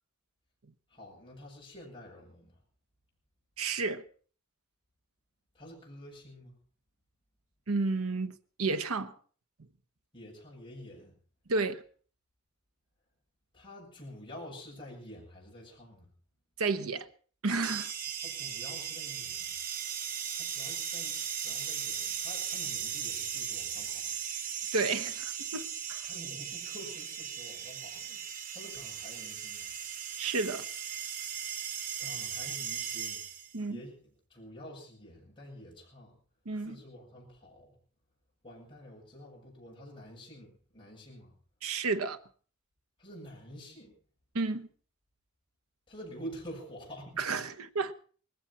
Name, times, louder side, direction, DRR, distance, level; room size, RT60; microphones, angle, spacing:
voice 1, 0.9-2.6 5.5-6.5 10.1-11.2 13.5-16.1 18.2-19.5 20.4-24.1 26.1-28.2 28.5-29.7 32.0-33.2 33.7-34.0 34.3-36.2 36.6-37.7 38.4-41.4 43.0-43.9 45.9-47.4, equal, 25° left, 7.6 m, -48 dB
voice 2, 3.6-4.0 7.7-9.1 11.5-11.8 16.6-17.1 17.4-17.9 24.7-26.0 30.2-30.6 33.5-33.8 36.5-36.8 41.6-42.2 44.3-44.7 47.2-47.9, right 3 dB, 75° right, 1.0 m, -31 dB
sound 1, 17.6-33.6, right 8 dB, 45° right, 1.2 m, -37 dB
19.5 x 16.0 x 4.3 m
head